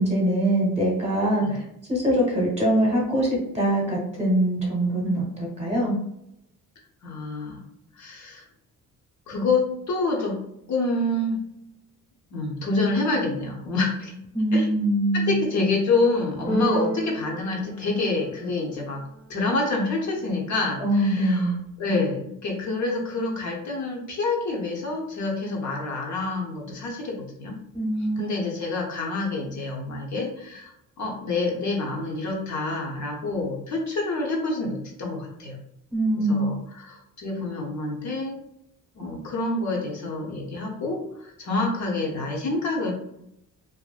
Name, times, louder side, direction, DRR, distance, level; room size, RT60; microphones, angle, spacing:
voice 1, 0.0-1.6 1.9-6.0 14.3-15.4 20.8-21.6 27.7-28.2 35.9-36.5, right 1 dB, 20° right, -3 dB, 0.9 m, -23 dB
voice 2, 7.0-7.6 8.0-8.4 9.3-10.4 10.7-11.4 12.3-14.1 14.5-14.7 15.1-19.0 19.3-21.5 21.8-27.6 28.2-35.6 36.1-38.4 39.0-42.9, left 3 dB, 60° left, -1 dB, 0.7 m, -27 dB
Keyboard (musical), 16.5-18.6, right 3 dB, 25° left, 0.5 m, -31 dB
2.6 x 2.6 x 2.3 m, 0.78 s
cardioid pair, 160°, 33 cm